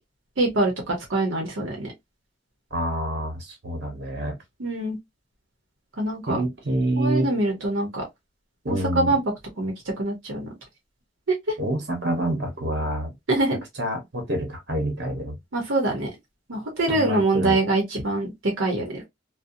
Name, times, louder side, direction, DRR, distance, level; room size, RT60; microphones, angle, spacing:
voice 1, 0.4-1.9 4.6-5.0 6.0-6.4 7.0-8.0 8.7-9.2 9.6-10.5 11.5-11.6 13.3-13.6 15.5-16.1 16.5-19.0, right 2 dB, 80° right, 0.9 m, -24 dB
voice 2, 2.7-4.3 6.3-7.3 8.6-9.1 11.6-13.1 13.8-15.3 16.9-17.6, right 1 dB, 55° right, 1.1 m, -27 dB
2.6 x 2.1 x 2.6 m
head